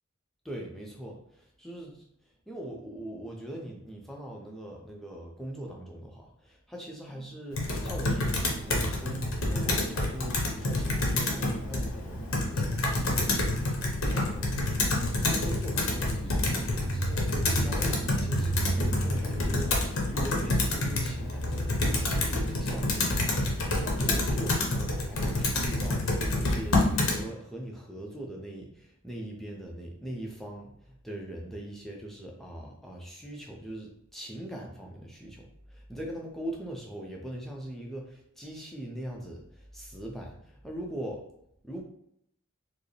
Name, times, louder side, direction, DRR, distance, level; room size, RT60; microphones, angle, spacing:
voice 1, 0.4-2.1 2.5-14.8 15.3-41.2 41.6-41.8, right 1 dB, ahead, -1 dB, 0.5 m, -41 dB
Computer keyboard, 7.5-27.2, left 1 dB, 75° left, 0.8 m, -28 dB
4.6 x 2.0 x 3.2 m, 0.75 s
head